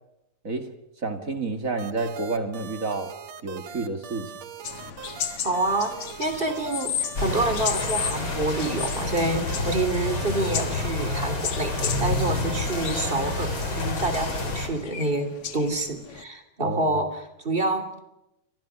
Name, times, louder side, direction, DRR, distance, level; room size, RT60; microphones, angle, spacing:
voice 1, 1.0-3.1 3.4-4.3 16.6-17.0, right 3 dB, 35° right, 7 dB, 1.5 m, -29 dB
sound 1, 1.8-13.8, right 8 dB, 55° right, 2.1 m, -41 dB
sound 2, 4.6-16.2, left 8 dB, 50° left, 1.8 m, -35 dB
voice 2, 5.4-18.0, right 2 dB, 15° right, 9 dB, 2.8 m, -27 dB
sound 3, 7.2-14.7, left 2 dB, 30° left, 4.4 m, -29 dB
29.5 x 24.5 x 6.3 m, 0.88 s
omnidirectional pair, 4.5 m